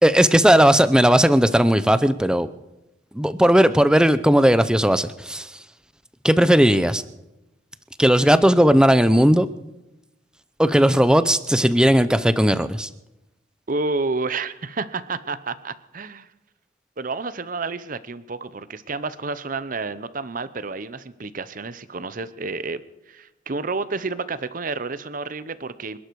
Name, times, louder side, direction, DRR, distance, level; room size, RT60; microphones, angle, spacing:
voice 1, 0.0-2.5 3.1-5.5 6.2-7.0 8.0-9.5 10.6-12.9, equal, 5° right, 13 dB, 0.5 m, -17 dB
voice 2, 13.7-16.3 17.0-22.8 23.1-26.0, right 3 dB, 45° right, 14 dB, 0.8 m, -30 dB
26.0 x 11.5 x 4.7 m, 0.95 s
head